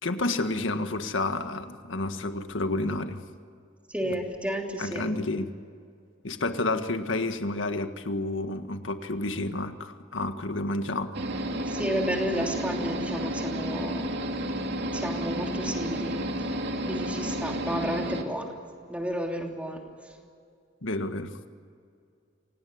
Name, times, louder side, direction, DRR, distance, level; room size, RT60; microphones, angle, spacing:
voice 1, 0.0-3.2 4.1-4.2 4.8-5.5 6.2-11.1 20.8-21.3, left 2 dB, 90° left, 8 dB, 1.7 m, -30 dB
voice 2, 3.9-5.1 11.7-14.1 14.9-16.5 16.9-18.5 18.9-19.8, equal, 5° right, 1 dB, 3.0 m, -32 dB
sound 1, 11.1-18.2, equal, 60° right, 2.6 m, -31 dB
27.0 x 18.5 x 9.5 m, 2.4 s
head